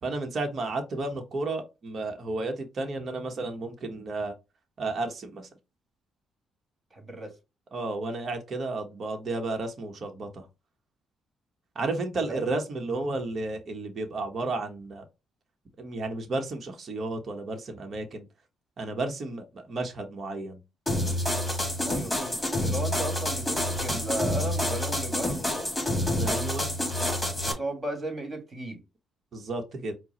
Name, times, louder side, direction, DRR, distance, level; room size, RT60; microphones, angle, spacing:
voice 1, 0.0-4.3 4.8-5.5 7.7-10.5 11.7-15.0 15.8-18.3 18.8-20.6 23.9-24.0 26.2-26.7 29.3-29.9, right 2 dB, 50° right, 1.1 m, -32 dB
voice 2, 6.9-7.4 12.3-12.4 21.9-25.7 27.4-28.8, right 1 dB, 25° right, 2.0 m, -35 dB
sound 1, 20.9-27.5, left 1 dB, 10° left, 2.1 m, -28 dB
4.6 x 2.2 x 4.1 m
cardioid pair, 90°, 0 cm